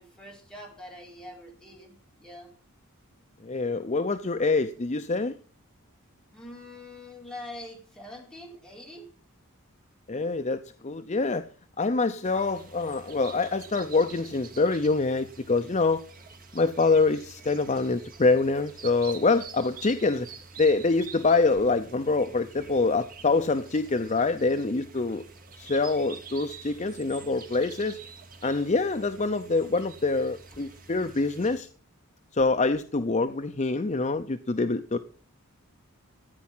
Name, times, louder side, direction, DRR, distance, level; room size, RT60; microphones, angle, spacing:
voice 1, 0.0-2.5 6.3-9.1, left 1 dB, 5° left, 4.7 m, -44 dB
voice 2, 3.4-5.4 10.1-11.4 11.8-16.0 16.5-20.3 20.6-25.2 25.6-28.0 28.4-31.7 32.3-35.0, left 3 dB, 30° left, 0.6 m, -25 dB
sound 1, 12.2-31.6, right 5 dB, 40° right, 2.2 m, -47 dB
15.0 x 9.5 x 5.7 m
head